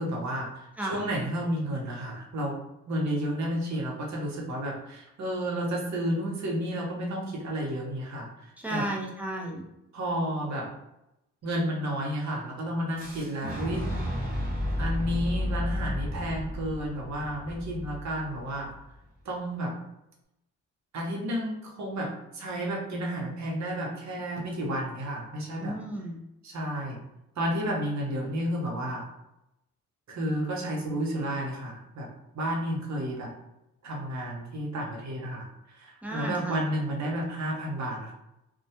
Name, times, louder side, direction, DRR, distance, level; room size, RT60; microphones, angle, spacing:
voice 1, 0.0-2.6 2.9-8.9 9.9-10.7 11.4-13.9 14.8-18.7 19.2-19.8 20.9-25.7 26.4-27.0 27.4-29.1 30.1-32.1 32.3-33.3 33.8-38.1, equal, 60° right, -1 dB, 0.8 m, -31 dB
voice 2, 8.6-9.6 25.6-26.2 36.0-36.6, right 1 dB, 5° right, -2 dB, 0.5 m, -33 dB
Boom, 13.0-18.8, left 1 dB, 30° right, 0.9 m, -32 dB
2.2 x 2.1 x 2.8 m, 0.88 s
cardioid pair, 85°, 32 cm